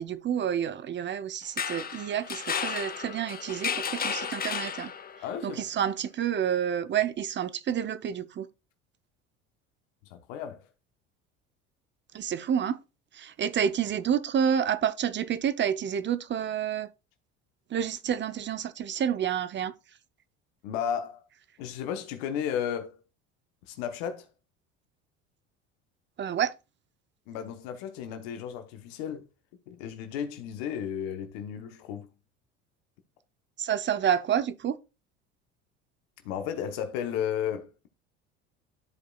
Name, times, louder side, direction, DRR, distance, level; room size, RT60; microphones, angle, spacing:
voice 1, 0.0-4.9 5.4-8.5 12.1-12.8 13.2-16.9 17.7-19.7 26.2-26.5 33.6-34.8, right 8 dB, 35° right, 0.7 m, -29 dB
sound 1, 1.4-5.3, left 6 dB, 30° left, 0.8 m, -33 dB
voice 2, 5.2-5.6 10.1-10.7 20.6-21.2 21.6-23.0 23.7-24.3 27.3-29.3 29.7-32.1 36.2-37.9, left 8 dB, 75° left, 1.1 m, -34 dB
13.0 x 4.9 x 2.3 m
hypercardioid pair, 80°, 32 cm